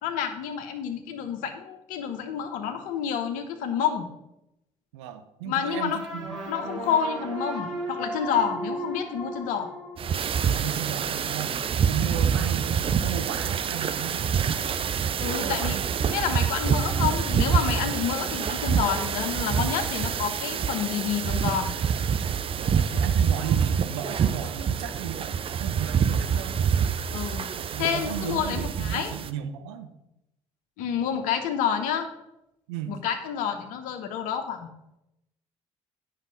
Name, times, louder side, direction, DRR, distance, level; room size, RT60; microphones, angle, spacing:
voice 1, 0.0-4.1 5.4-6.0 6.5-9.7 15.2-15.8 16.0-21.7 27.1-27.5 27.8-29.1 30.8-32.1 32.9-34.7, left 8 dB, 60° left, 6 dB, 1.0 m, -29 dB
voice 2, 4.9-6.4 10.4-11.6 11.9-14.3 15.4-15.8 22.6-26.7 27.3-29.9 32.7-33.0, right 10 dB, 70° right, 8 dB, 0.8 m, -35 dB
sound 1, 5.6-10.6, right 1 dB, 90° right, 2.0 m, -35 dB
sound 2, 10.0-29.3, right 7 dB, 35° right, 0.5 m, -26 dB
9.2 x 5.6 x 5.3 m, 0.87 s
figure-of-eight pair, 45°, 15 cm